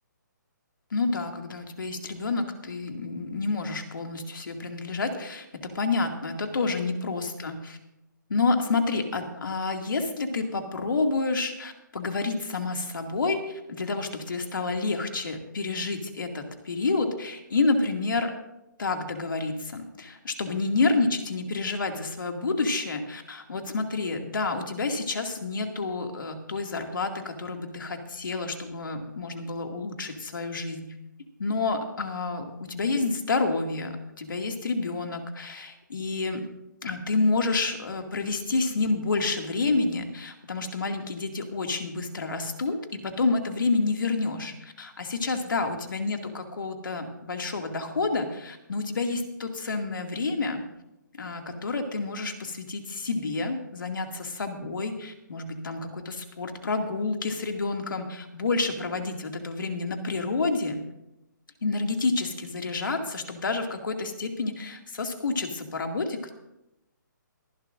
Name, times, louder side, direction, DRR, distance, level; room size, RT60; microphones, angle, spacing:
voice 1, 0.9-7.8 8.3-18.3 18.8-30.9 31.4-36.5 36.8-50.6 51.2-60.8 61.6-66.3, left 3 dB, 80° left, 4 dB, 2.3 m, -29 dB
24.0 x 11.5 x 2.6 m, 0.90 s
hypercardioid pair, 175°, 11 cm